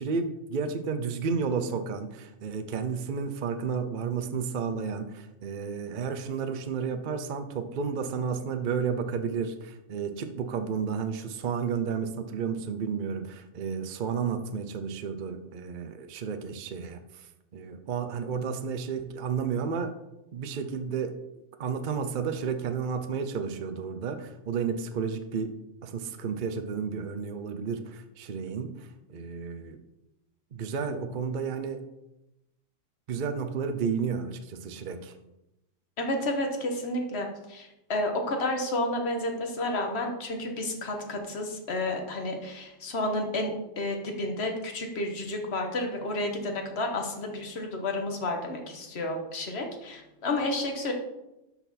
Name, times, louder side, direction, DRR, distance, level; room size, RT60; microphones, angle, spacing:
voice 1, 0.0-19.9 20.3-21.2 21.6-25.6 25.8-29.8 30.5-31.8 33.1-35.1, right 6 dB, 50° right, 8 dB, 0.7 m, -32 dB
voice 2, 36.0-50.9, left 1 dB, 55° left, 3 dB, 1.5 m, -31 dB
12.0 x 4.5 x 4.2 m, 0.93 s
omnidirectional pair, 1.3 m